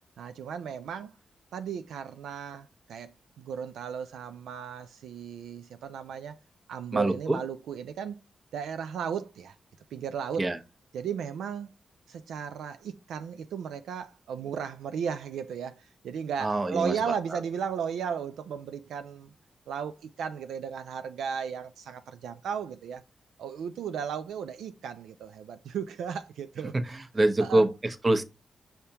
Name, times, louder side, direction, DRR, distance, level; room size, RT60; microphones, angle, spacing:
voice 1, 0.2-1.1 1.5-3.1 3.4-6.4 6.7-8.2 8.5-9.6 9.9-10.4 10.9-11.7 12.1-19.3 19.7-23.0 23.4-27.0 27.4-27.6, right 7 dB, 90° right, 0.3 m, -35 dB
voice 2, 6.9-7.4 10.4-10.6 16.4-17.1 26.7-28.2, right 2 dB, 35° right, 0.8 m, -25 dB
5.6 x 3.3 x 2.8 m
cardioid pair, 55°, 0 cm